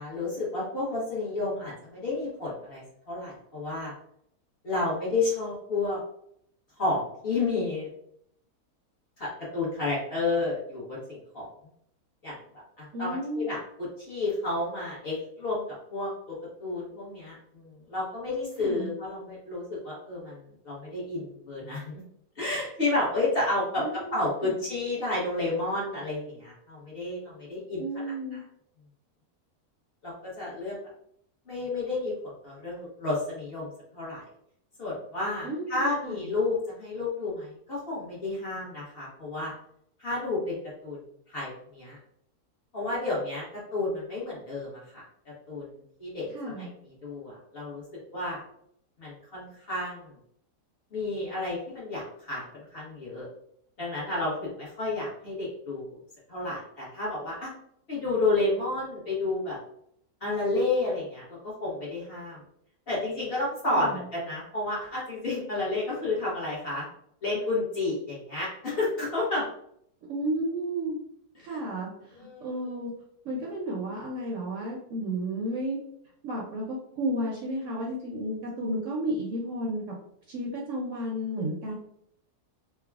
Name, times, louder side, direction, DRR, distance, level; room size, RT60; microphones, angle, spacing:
voice 1, 0.0-3.9 4.6-6.0 6.8-7.9 9.2-11.5 12.2-15.6 15.9-20.4 20.6-22.0 22.4-28.4 30.0-30.8 31.5-34.2 34.8-39.5 40.0-41.0 41.3-42.0 42.7-45.0 45.5-47.8 48.1-48.4 49.0-50.1 50.9-53.3 53.8-56.0 56.3-57.5 57.9-59.6 60.2-62.4 62.9-66.9 67.2-69.5 72.1-72.6, left 2 dB, 45° left, -7 dB, 0.9 m, -31 dB
voice 2, 12.9-13.5 18.6-18.9 23.8-24.6 27.8-28.4 35.4-36.2 46.3-46.7 63.7-64.0 70.1-71.0 71.4-72.9 73.2-75.8 76.2-79.9 80.3-81.7, right 1 dB, 70° right, -2 dB, 0.8 m, -32 dB
3.3 x 2.1 x 2.3 m, 0.70 s
omnidirectional pair, 1.7 m